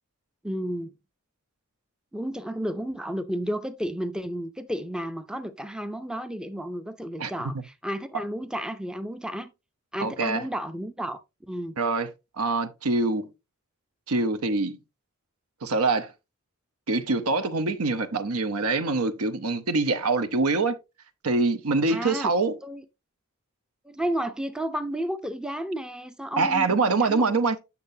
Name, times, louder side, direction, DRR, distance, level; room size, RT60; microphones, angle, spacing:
voice 1, 0.4-0.9 2.1-9.5 9.9-11.8 21.9-22.3 22.6-22.8 23.8-27.5, equal, 5° right, 0.5 m, -32 dB
voice 2, 7.2-7.6 10.0-10.4 11.8-12.1 12.4-13.3 14.1-14.8 15.6-16.1 16.9-20.8 21.2-22.6 26.4-27.6, right 3 dB, 80° right, 0.8 m, -24 dB
8.5 x 6.6 x 2.7 m
head